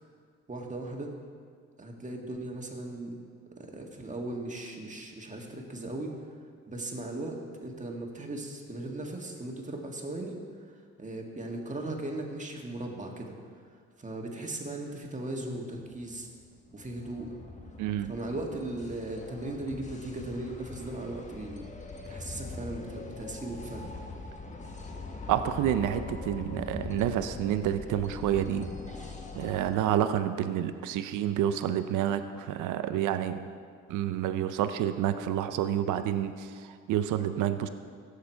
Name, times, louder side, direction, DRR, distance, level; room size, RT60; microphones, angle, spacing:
voice 1, 0.5-1.1 1.8-3.1 3.6-6.1 6.7-10.4 11.0-13.3 14.0-16.3 16.7-17.3 18.1-21.7 22.0-23.9, right 2 dB, 25° right, 1 dB, 1.8 m, -37 dB
sound 1, 15.8-29.8, left 3 dB, 25° left, 1.1 m, -42 dB
voice 2, 17.8-18.1 25.3-28.7 29.3-33.5 33.9-37.7, right 10 dB, 85° right, 10 dB, 0.6 m, -29 dB
16.5 x 6.6 x 4.5 m, 2.1 s
cardioid pair, 90°, 30 cm